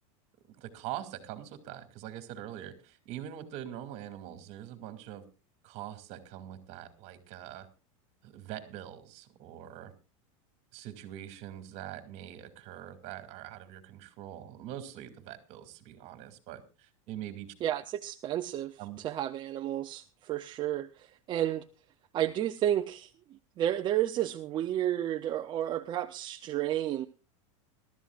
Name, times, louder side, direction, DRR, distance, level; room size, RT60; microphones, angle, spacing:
voice 1, 0.5-5.2 5.6-7.7 8.2-9.9 10.7-17.5 18.8-19.0, right 11 dB, 45° right, 9 dB, 2.5 m, -43 dB
voice 2, 17.6-21.6 22.1-23.1 23.6-27.1, right 12 dB, 25° right, 7 dB, 0.6 m, -31 dB
22.0 x 13.0 x 2.4 m, 0.32 s
supercardioid pair, 150°, 17 cm